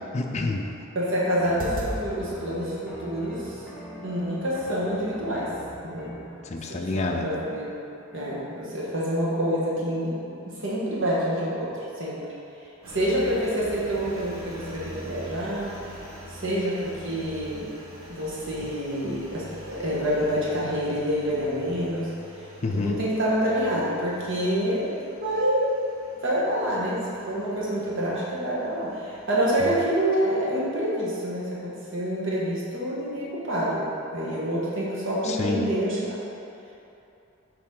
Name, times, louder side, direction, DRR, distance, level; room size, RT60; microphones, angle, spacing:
voice 1, 0.1-0.7 6.4-7.3 22.6-23.0 29.6-29.7 35.2-35.7, left 2 dB, 35° left, 1 dB, 0.4 m, -28 dB
voice 2, 0.9-3.6 4.0-5.5 5.8-6.2 6.7-7.7 8.1-10.3 10.6-11.7 12.0-12.2 12.9-15.7 16.3-17.7 18.1-22.1 22.7-25.7 26.2-27.0 27.3-36.2, equal, 60° right, -6 dB, 1.3 m, -27 dB
sound 1, 1.4-6.9, equal, 5° right, 1.2 m, -42 dB
sound 2, 1.6-2.0 2.6-3.6 4.7-4.8 5.3-5.6 6.0-6.3 6.7-6.8, equal, 40° right, 0.7 m, -38 dB
Engine, 12.8-30.8, equal, 80° right, 1.3 m, -45 dB
6.8 x 4.8 x 3.7 m, 2.8 s
head